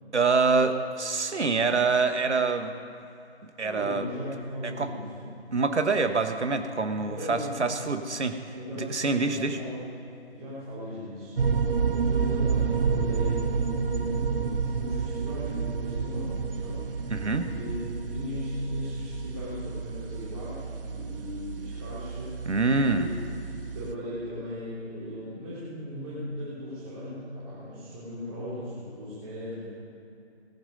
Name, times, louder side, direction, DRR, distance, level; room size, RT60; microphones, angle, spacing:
voice 1, 0.1-2.7 3.6-4.1 4.6-4.9 5.5-8.4 8.8-9.6 17.1-17.5 22.5-23.1, right 4 dB, 80° right, 8 dB, 1.4 m, -25 dB
voice 2, 3.6-5.3 6.9-7.7 8.5-10.0 10.3-11.3 12.1-16.9 17.2-22.4 22.9-23.1 23.5-29.7, left 1 dB, 25° right, -10 dB, 3.5 m, -38 dB
sound 1, 11.4-23.9, right 5 dB, 55° right, 0.9 m, -30 dB
19.0 x 11.0 x 5.3 m, 2.8 s
figure-of-eight pair, 155°, 34 cm